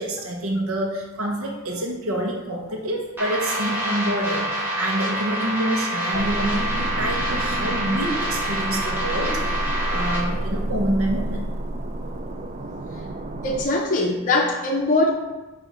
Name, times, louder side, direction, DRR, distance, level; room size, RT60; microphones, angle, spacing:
voice 1, 0.0-11.4, right 1 dB, 80° right, -1 dB, 1.0 m, -27 dB
sound 1, 3.2-10.2, right 1 dB, 10° right, 1.2 m, -27 dB
sound 2, 6.1-13.6, right 1 dB, 35° right, 0.4 m, -29 dB
voice 2, 13.4-15.1, left 2 dB, 40° left, 0 dB, 0.6 m, -21 dB
7.9 x 2.7 x 4.8 m, 1.1 s
head